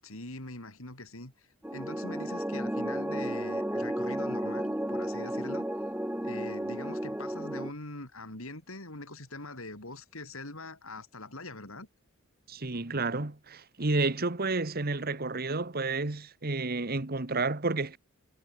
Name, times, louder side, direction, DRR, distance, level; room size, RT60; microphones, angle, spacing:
voice 1, 0.0-5.7 6.2-11.9, left 2 dB, 75° left, 6.9 m, -43 dB
sound 1, 1.6-7.7, right 1 dB, 5° right, 1.1 m, -33 dB
voice 2, 12.5-18.0, right 3 dB, 45° right, 1.4 m, -31 dB
head